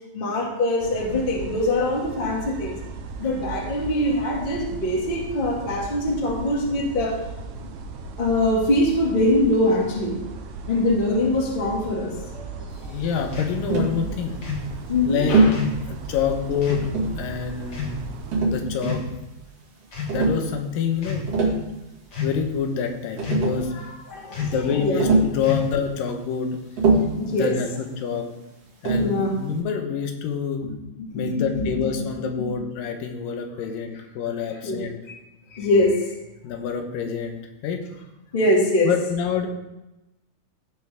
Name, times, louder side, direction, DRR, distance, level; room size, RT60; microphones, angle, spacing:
voice 1, 0.1-2.8 3.2-7.2 7.6-7.7 8.2-10.2 10.7-12.6 14.9-15.5 23.7-25.0 27.2-27.5 29.0-29.3 30.6-30.7 31.0-32.1 32.4-32.5 34.6-34.8 35.5-36.1 38.3-38.9, left 1 dB, 20° left, -3 dB, 1.4 m, -23 dB
sound 1, 0.8-18.4, right 4 dB, 70° right, 1.9 m, -37 dB
voice 2, 12.9-14.4 15.1-15.4 15.9-16.9 17.2-18.0 18.5-19.0 20.1-21.5 22.2-23.7 24.3-26.6 27.3-27.7 28.0-28.2 28.8-30.7 31.1-35.0 36.4-37.8 38.8-39.5, left 7 dB, 70° left, 5 dB, 2.6 m, -27 dB
sound 2, 13.3-13.6 14.4-14.7 15.5-15.8 16.6-16.9 17.7-18.0 18.8-19.3 19.9-20.2 20.9-21.3 22.1-22.5 23.2-23.6 24.3-24.7 25.4-25.9, left 5 dB, 45° left, 1.4 m, -29 dB
Tap, 13.7-14.0 15.3-15.6 16.7-17.3 18.3-19.1 20.1-20.4 21.1-21.7 22.8-22.9 23.2-23.7 25.0-25.4 26.8-27.2 28.8-29.2, right 2 dB, 45° right, 2.8 m, -21 dB
16.5 x 6.2 x 3.5 m, 0.97 s
omnidirectional pair, 4.4 m